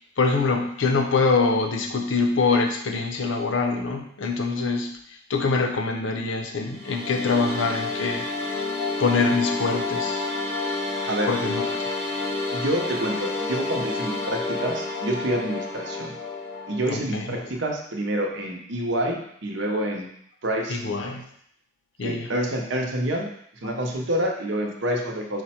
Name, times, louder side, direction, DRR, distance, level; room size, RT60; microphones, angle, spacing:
voice 1, 0.2-4.9 5.3-8.7 9.0-10.3 11.3-11.8 16.9-17.4 20.7-21.3 22.0-22.3, left 4 dB, 75° left, 3 dB, 0.6 m, -24 dB
sound 1, 6.6-16.8, left 3 dB, 15° left, 0.8 m, -29 dB
voice 2, 11.0-11.3 12.5-16.1 16.7-20.1 20.4-20.8 22.0-23.3 23.6-25.4, right 1 dB, 70° right, 0 dB, 0.7 m, -27 dB
4.8 x 2.2 x 4.2 m, 0.68 s
head